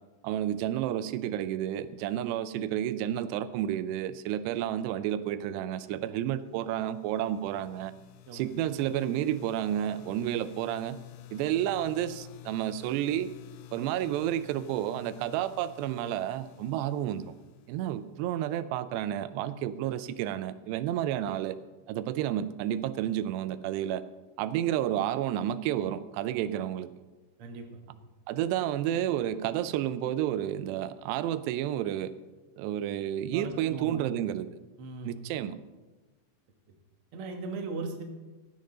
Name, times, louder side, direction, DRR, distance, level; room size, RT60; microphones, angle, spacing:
voice 1, 0.2-7.9 8.3-11.0 11.3-13.3 13.7-17.3 17.7-21.6 21.9-24.0 24.4-26.9 28.3-32.1 32.6-34.5 35.0-35.6, right 11 dB, 90° right, 14 dB, 2.8 m, -31 dB
sound 1, 6.6-18.3, left 16 dB, 85° left, 2.9 m, -51 dB
voice 2, 27.4-28.0 33.3-34.0 34.8-35.2 37.1-38.0, right 3 dB, 65° right, 3 dB, 1.4 m, -38 dB
15.5 x 10.5 x 3.9 m, 1.2 s
omnidirectional pair, 4.8 m